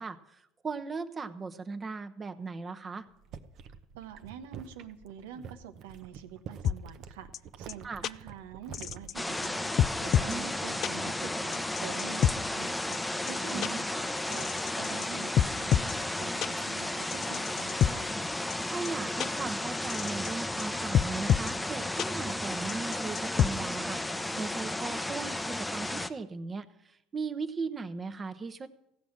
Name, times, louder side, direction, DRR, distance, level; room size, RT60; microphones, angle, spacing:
voice 1, 0.0-3.0 7.8-8.0 10.3-10.5 13.5-13.8 18.7-24.0 24.4-28.7, right 4 dB, 30° right, 9 dB, 1.0 m, -38 dB
sound 1, 3.1-10.2 10.5-10.9, right 7 dB, 60° right, 0.9 m, -48 dB
voice 2, 4.0-7.3 7.6-9.7 10.0-13.0 13.3-18.1, right 9 dB, 85° right, 9 dB, 1.0 m, -46 dB
sound 2, 6.6-6.8 7.3-7.4 7.7-7.8 8.0-8.1 8.7-9.1 9.4-9.5 9.8-10.3 10.8-10.9 11.5-12.3 12.9-13.0 13.3-13.4 13.6-13.7 14.3-15.1 15.4-15.9 16.4-16.5 17.1-17.9 18.5-18.6 18.8-18.9 19.2-19.3 19.9-20.3 20.6-20.7 20.9-21.5 22.0-22.1 22.7-23.5, left 10 dB, 55° left, 0.4 m, -26 dB
sound 3, 9.1-26.1, left 1 dB, 10° left, 0.7 m, -34 dB
15.5 x 6.1 x 8.7 m, 0.82 s
supercardioid pair, 80°, 0 cm